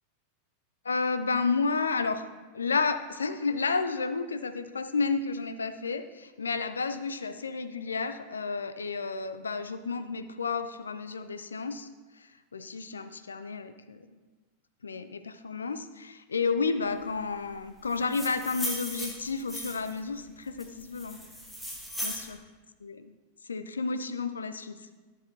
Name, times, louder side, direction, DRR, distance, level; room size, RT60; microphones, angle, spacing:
voice 1, 0.8-11.9 12.2-14.1 14.8-21.2 22.0-22.4 22.8-23.1 23.5-24.8, left 4 dB, 75° left, 11 dB, 0.5 m, -31 dB
sound 1, 17.9-20.0 20.6-22.3, equal, ahead, 1.7 m, -37 dB
12.0 x 7.4 x 2.7 m, 1.3 s
figure-of-eight pair, 90°, 0 cm